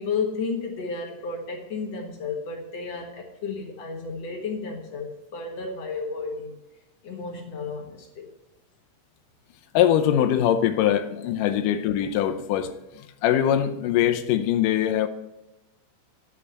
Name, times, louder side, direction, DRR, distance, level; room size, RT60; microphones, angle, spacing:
voice 1, 0.0-6.5 7.0-8.3, left 4 dB, 55° left, 2.0 m, -32 dB
voice 2, 9.7-12.7 13.2-15.1, left 10 dB, 90° left, 1.9 m, -22 dB
9.9 x 5.3 x 8.2 m
omnidirectional pair, 4.4 m